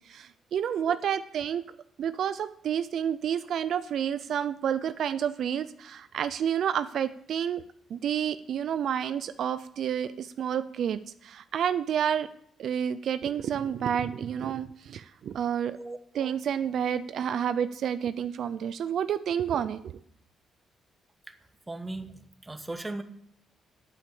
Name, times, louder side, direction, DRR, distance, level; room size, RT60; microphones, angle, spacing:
voice 1, 0.1-1.6 2.0-7.6 7.9-12.3 12.6-15.8 16.1-19.9, right 8 dB, 65° right, 13 dB, 0.5 m, -29 dB
voice 2, 15.8-16.3 21.7-23.0, right 2 dB, 15° right, 9 dB, 1.2 m, -38 dB
8.6 x 8.5 x 7.0 m, 0.67 s
cardioid pair, 90°, 0 cm